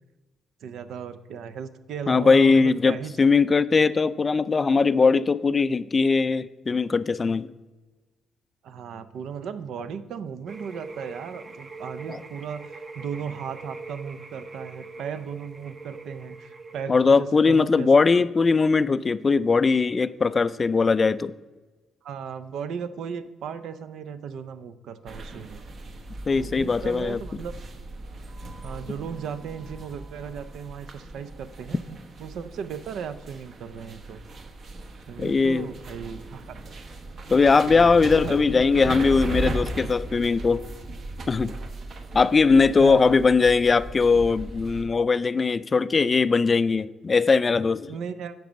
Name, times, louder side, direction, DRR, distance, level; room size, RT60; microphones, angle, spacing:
voice 1, 0.6-3.1 8.6-17.9 18.1-18.2 22.0-25.6 26.4-27.5 28.6-31.8 32.2-34.2 35.1-36.6 37.7-38.4 42.8-43.1 47.9-48.3, right 7 dB, 75° right, 12 dB, 0.5 m, -36 dB
voice 2, 2.1-7.5 12.1-12.2 16.9-21.3 26.3-27.2 35.2-35.7 37.3-40.6 41.3-41.5 42.1-47.9, left 4 dB, 35° left, 16 dB, 0.3 m, -20 dB
sound 1, 10.5-16.8, right 3 dB, 30° right, 0.8 m, -42 dB
sound 2, 25.1-44.8, right 2 dB, 55° right, 1.1 m, -37 dB
9.1 x 4.7 x 6.2 m, 1.2 s
cardioid pair, 90°, 0 cm